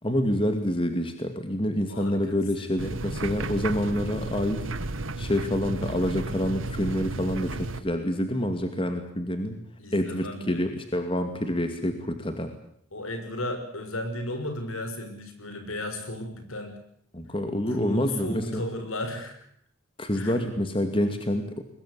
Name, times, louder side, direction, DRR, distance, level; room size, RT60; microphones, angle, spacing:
voice 1, 0.0-4.7 5.2-9.6 9.9-12.5 17.1-18.6 20.0-21.6, left 1 dB, 25° left, 7 dB, 2.3 m, -27 dB
voice 2, 1.9-2.9 9.8-10.6 12.9-16.7 17.7-19.4 20.1-20.4, left 1 dB, 75° left, 7 dB, 6.1 m, -35 dB
sound 1, 2.8-7.8, right 2 dB, 65° right, 1.7 m, -33 dB
23.0 x 21.5 x 8.4 m, 0.66 s
head